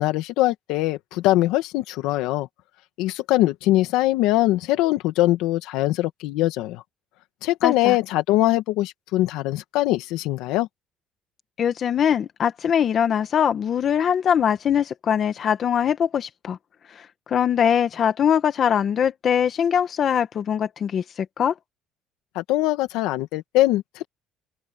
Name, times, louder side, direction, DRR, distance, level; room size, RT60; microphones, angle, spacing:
voice 1, 0.0-2.5 3.0-6.8 7.4-10.7 22.4-24.1, left 16 dB, 80° left, 2.0 m, -22 dB
voice 2, 7.6-8.0 11.6-16.6 16.9-21.5, left 8 dB, 40° left, 1.4 m, -22 dB
open air
cardioid pair, 150°, 0 cm